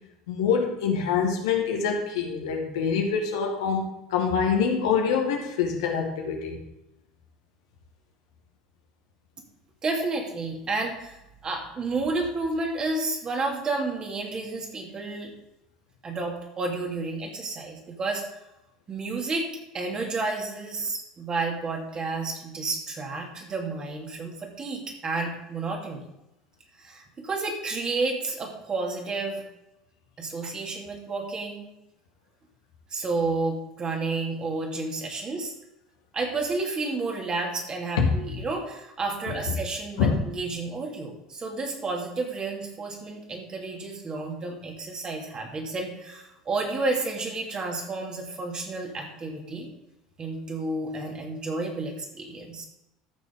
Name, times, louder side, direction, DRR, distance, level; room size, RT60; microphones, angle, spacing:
voice 1, 0.3-6.6 38.0-38.1 38.3-38.4 39.3-39.4 40.0-40.2, left 6 dB, 70° left, 2 dB, 1.9 m, -25 dB
voice 2, 9.8-15.3 16.0-18.4 18.9-26.1 26.8-29.4 30.2-31.7 32.9-35.5 36.1-49.7 50.2-52.7, right 3 dB, 30° right, 0 dB, 2.8 m, -31 dB
14.5 x 6.4 x 3.9 m, 0.89 s
figure-of-eight pair, 70°, 3 cm